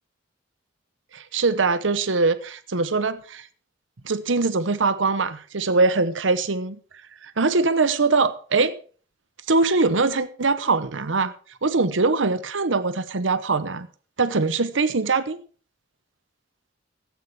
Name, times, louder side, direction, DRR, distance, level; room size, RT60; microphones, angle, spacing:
voice 1, 1.1-3.5 4.0-6.8 7.2-8.7 9.5-11.3 11.6-13.9 14.2-15.4, right 3 dB, 90° right, 1.0 m, -22 dB
15.0 x 8.4 x 4.7 m
head